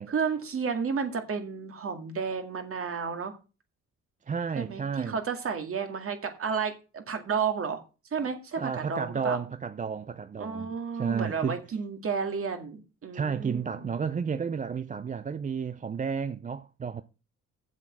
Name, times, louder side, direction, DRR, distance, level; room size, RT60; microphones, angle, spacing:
voice 1, 0.1-3.4 4.6-7.8 8.1-9.4 10.4-13.8, right 6 dB, 45° right, 2.0 m, -32 dB
voice 2, 4.3-5.2 8.6-11.6 13.1-17.0, right 6 dB, 25° right, 0.5 m, -32 dB
7.6 x 7.5 x 6.1 m
cardioid pair, 90°, 30 cm